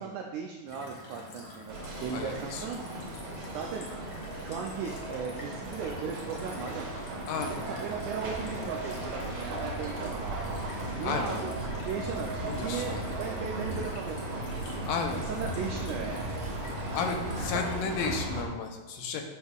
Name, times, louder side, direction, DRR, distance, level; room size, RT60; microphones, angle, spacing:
voice 1, 0.0-3.1 3.5-3.9 4.4-6.9 7.5-10.6 10.8-14.8 15.1-16.3, right 6 dB, 85° right, 1 dB, 1.7 m, -37 dB
sound 1, 0.7-18.1, left 2 dB, 60° left, 2.2 m, -48 dB
sound 2, 1.7-18.5, right 2 dB, 65° right, 2.8 m, -36 dB
voice 2, 1.9-2.6 7.3-7.8 11.0-11.3 12.5-13.1 14.9-15.2 16.9-19.2, left 5 dB, 85° left, 4 dB, 2.4 m, -33 dB
10.0 x 5.3 x 2.3 m, 1.2 s
omnidirectional pair, 4.0 m